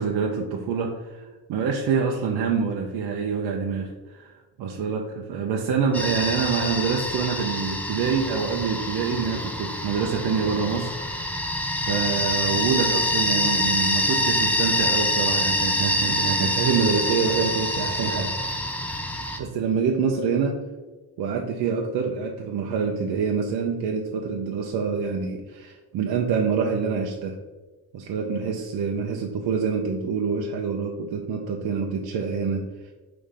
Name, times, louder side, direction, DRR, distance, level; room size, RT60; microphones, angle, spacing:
voice 1, 0.0-18.4 19.4-20.6 21.2-27.4 27.9-32.9, right 5 dB, 60° right, 1 dB, 0.7 m, -26 dB
sound 1, 5.9-19.4, left 1 dB, 5° left, 0.4 m, -26 dB
5.5 x 3.4 x 5.0 m, 1.2 s
cardioid pair, 145°, 43 cm